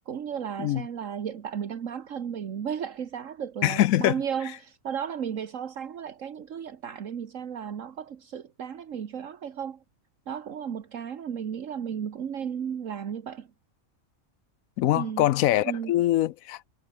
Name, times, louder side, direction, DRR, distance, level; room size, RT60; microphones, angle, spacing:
voice 1, 0.0-9.8 10.3-13.5 14.9-15.3 15.6-15.9, right 8 dB, 70° right, 1.6 m, -34 dB
voice 2, 3.6-4.1 14.8-16.7, left 14 dB, 85° left, 1.0 m, -23 dB
omnidirectional pair, 1.4 m